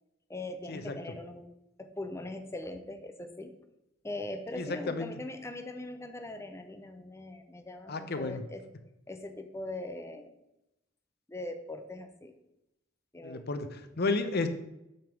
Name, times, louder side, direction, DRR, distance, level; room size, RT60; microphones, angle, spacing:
voice 1, 0.3-1.5 1.8-3.5 4.0-8.6 9.1-10.3 11.3-12.4 13.1-13.5, left 2 dB, 15° left, 7 dB, 0.7 m, -41 dB
voice 2, 4.5-5.1 7.9-8.4 13.2-14.5, left 3 dB, 55° left, 9 dB, 0.7 m, -32 dB
7.8 x 3.6 x 6.1 m, 0.89 s
head